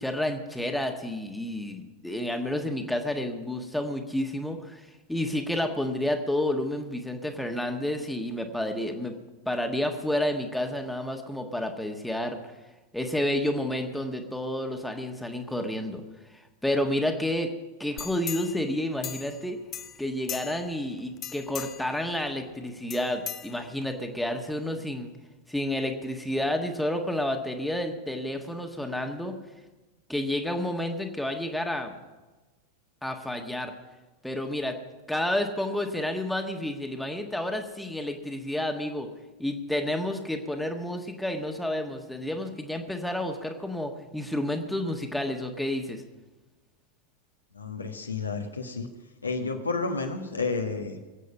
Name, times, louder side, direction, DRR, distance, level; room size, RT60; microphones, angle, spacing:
voice 1, 0.0-9.1 9.4-12.4 12.9-16.0 16.3-17.5 17.8-19.6 20.0-25.1 25.5-29.3 30.1-32.0 33.0-33.7 34.2-34.8 35.1-39.1 39.4-46.0, left 1 dB, 5° left, 4 dB, 1.5 m, -30 dB
sound 1, 18.0-19.4 19.7-20.8 21.2-22.0 22.9-24.0 24.5-24.6, left 9 dB, 25° left, 0.8 m, -39 dB
voice 2, 47.5-48.9 49.2-51.0, left 4 dB, 80° left, 3 dB, 1.5 m, -31 dB
22.5 x 8.2 x 5.5 m, 1.2 s
figure-of-eight pair, 90°, 0 cm